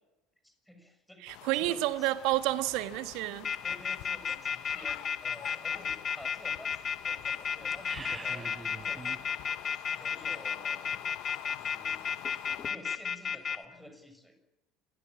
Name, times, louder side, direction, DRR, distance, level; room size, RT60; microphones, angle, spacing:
voice 1, 0.4-1.3 1.5-2.1 3.6-8.5 8.8-9.1 9.9-11.2 11.5-12.2 12.6-14.3, left 1 dB, 5° left, 7 dB, 6.7 m, -51 dB
voice 2, 1.2-3.5, right 16 dB, 55° right, 12 dB, 1.5 m, -30 dB
sound 1, 1.3-12.7, left 17 dB, 55° left, 1.2 m, -47 dB
sound 2, 3.4-13.6, left 7 dB, 30° left, 2.0 m, -32 dB
sound 3, 7.7-9.3, right 4 dB, 20° right, 1.5 m, -44 dB
28.0 x 21.5 x 7.4 m, 0.98 s
figure-of-eight pair, 65°, 0 cm